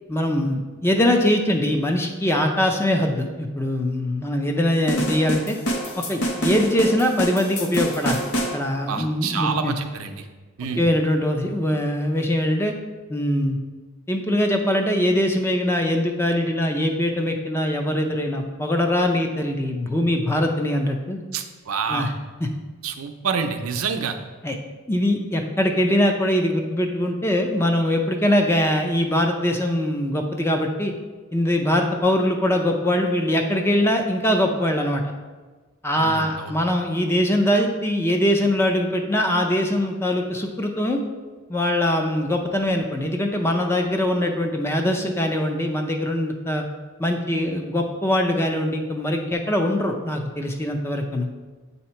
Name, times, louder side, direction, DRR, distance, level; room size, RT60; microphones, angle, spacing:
voice 1, 0.1-5.6 6.1-8.2 8.5-9.7 10.8-12.7 13.1-13.6 14.1-21.2 21.9-22.1 22.4-22.5 24.4-24.6 24.9-30.9 31.3-35.0 35.8-41.0 41.5-46.6 47.0-51.3, left 1 dB, 10° left, 3 dB, 0.4 m, -22 dB
sound 1, 4.9-8.6, right 1 dB, 85° left, 0.8 m, -26 dB
voice 2, 8.9-10.3 10.6-10.8 21.3-22.1 22.8-24.2 35.9-36.5, right 5 dB, 80° right, 6 dB, 0.5 m, -27 dB
7.9 x 2.8 x 4.3 m, 1.3 s
head